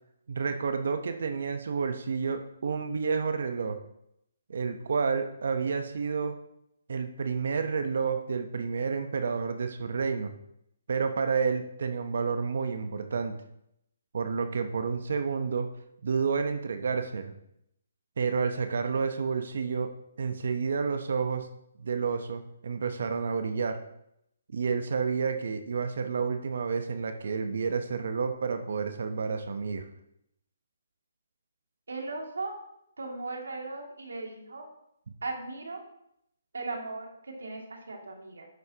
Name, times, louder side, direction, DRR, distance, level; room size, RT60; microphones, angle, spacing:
voice 1, 0.3-3.8 4.5-6.4 6.9-10.3 10.9-13.3 14.1-15.7 16.0-17.3 18.2-19.9 20.2-21.5 21.8-23.8 24.5-29.8, right 5 dB, 70° right, 7 dB, 0.9 m, -30 dB
voice 2, 31.9-32.5 33.0-34.7 35.2-35.8 36.5-38.5, right 3 dB, 85° right, 1 dB, 2.5 m, -37 dB
10.5 x 7.8 x 2.9 m, 0.78 s
hypercardioid pair, 145°, 0 cm